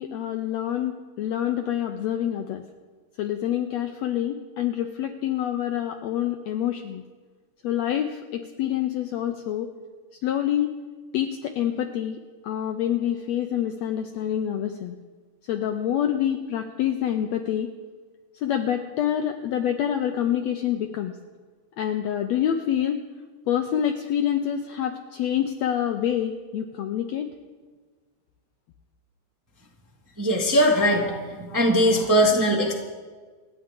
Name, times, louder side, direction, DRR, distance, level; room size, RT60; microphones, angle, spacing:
voice 1, 0.0-2.6 3.2-7.0 7.6-9.7 10.2-10.7 11.1-12.2 12.4-15.0 15.5-17.7 18.4-21.1 21.8-23.0 23.5-27.3, left 10 dB, 80° left, 5 dB, 1.6 m, -26 dB
voice 2, 30.2-32.7, equal, 10° right, -2 dB, 0.9 m, -20 dB
28.5 x 10.0 x 3.7 m, 1.4 s
omnidirectional pair, 3.7 m